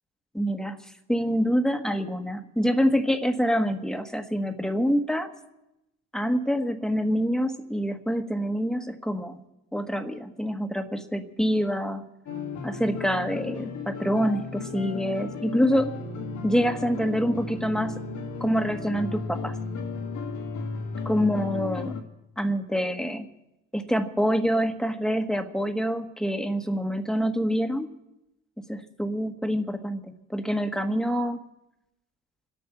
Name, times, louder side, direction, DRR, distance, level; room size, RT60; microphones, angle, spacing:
voice 1, 0.3-0.8 1.1-5.3 6.1-9.4 9.7-12.1 12.6-16.0 16.4-18.0 18.4-19.6 21.0-21.9 22.4-23.3 23.7-27.9 28.7-31.4, equal, ahead, 6 dB, 1.5 m, -26 dB
sound 1, 12.3-22.0, left 4 dB, 75° left, 2.2 m, -35 dB
26.0 x 8.9 x 6.1 m, 0.89 s
cardioid pair, 90°, 30 cm